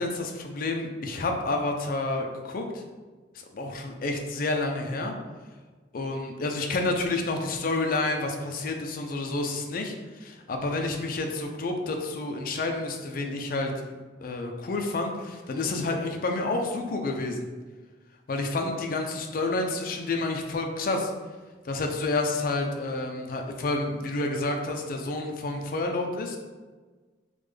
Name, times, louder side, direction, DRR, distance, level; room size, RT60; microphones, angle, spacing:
voice 1, 0.0-2.8 3.5-5.1 5.9-9.9 10.2-13.7 14.2-17.5 18.3-21.1 21.6-26.4, left 2 dB, 50° left, 3 dB, 0.4 m, -29 dB
3.3 x 2.1 x 3.3 m, 1.4 s
head